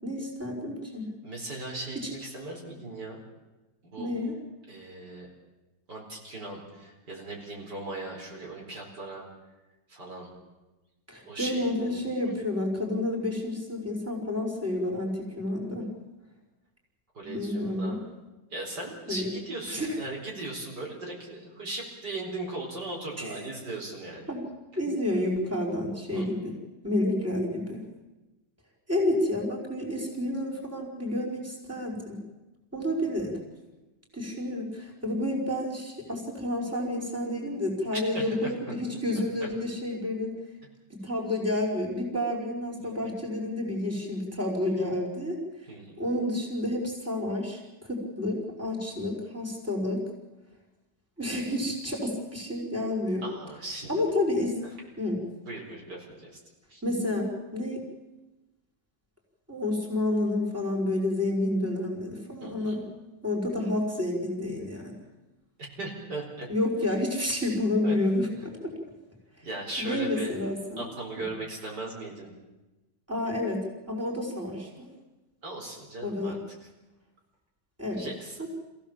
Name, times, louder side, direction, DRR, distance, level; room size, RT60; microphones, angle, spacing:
voice 1, 0.0-1.1 1.9-2.1 4.0-4.4 11.1-15.9 17.2-18.0 19.1-19.3 19.7-20.0 23.2-23.5 24.3-24.5 24.8-26.6 26.8-27.9 28.9-32.2 32.7-33.4 34.1-40.3 40.9-45.4 46.0-50.0 51.2-53.2 53.9-54.6 55.0-55.2 56.8-57.8 59.5-62.9 63.2-65.0 66.5-68.7 69.8-70.8 71.2-71.3 73.1-74.9 76.0-76.4 77.8-78.1 78.4-78.5, left 1 dB, 5° right, -2 dB, 4.9 m, -30 dB
voice 2, 1.2-3.2 3.8-4.1 4.7-5.3 5.9-9.3 9.9-10.3 11.2-12.0 17.1-18.0 18.5-24.3 26.1-26.3 38.1-38.5 39.4-39.5 42.8-43.1 45.7-46.0 53.2-54.0 55.5-56.4 56.7-56.8 62.4-62.8 65.6-66.5 67.8-68.0 69.4-70.3 70.8-72.3 75.4-76.4 78.0-78.5, right 2 dB, 65° right, -1 dB, 5.0 m, -38 dB
27.0 x 16.5 x 7.4 m, 1.1 s
omnidirectional pair, 1.9 m